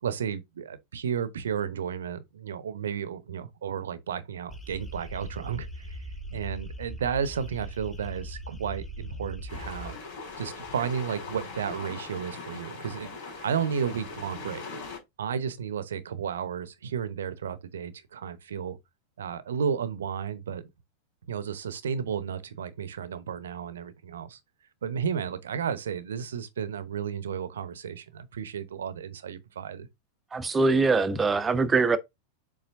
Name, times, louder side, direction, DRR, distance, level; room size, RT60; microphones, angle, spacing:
voice 1, 0.0-6.0 6.3-10.0 10.4-14.7 15.2-18.8 19.2-20.7 21.3-24.4 24.8-29.9, right 7 dB, 65° right, 0.9 m, -33 dB
sound 1, 4.5-9.9, equal, 15° left, 2.1 m, -40 dB
sound 2, 9.5-15.0, left 4 dB, 55° left, 4.6 m, -40 dB
voice 2, 30.3-32.0, right 3 dB, 15° right, 0.9 m, -23 dB
7.4 x 4.8 x 2.6 m
figure-of-eight pair, 90°, 0 cm